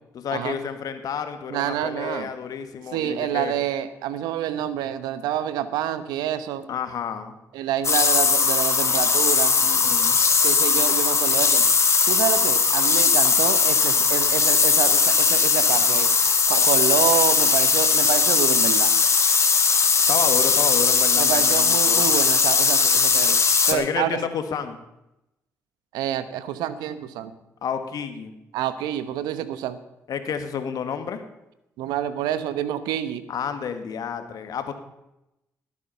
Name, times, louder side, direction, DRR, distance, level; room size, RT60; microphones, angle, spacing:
voice 1, 0.1-3.6 6.7-7.4 9.6-10.2 20.1-22.1 23.7-24.8 27.6-28.3 30.1-31.2 33.3-34.7, left 7 dB, 65° left, 8 dB, 1.8 m, -30 dB
voice 2, 1.5-2.3 2.9-6.7 7.5-9.5 10.4-11.6 12.1-16.1 16.5-18.9 21.2-23.4 23.7-24.1 25.9-27.3 28.5-29.8 31.8-33.2, right 11 dB, 80° right, 13 dB, 1.0 m, -27 dB
sound 1, 7.8-23.7, left 5 dB, 45° left, 2.0 m, -19 dB
18.5 x 8.4 x 5.7 m, 0.89 s
hypercardioid pair, 50°, 7 cm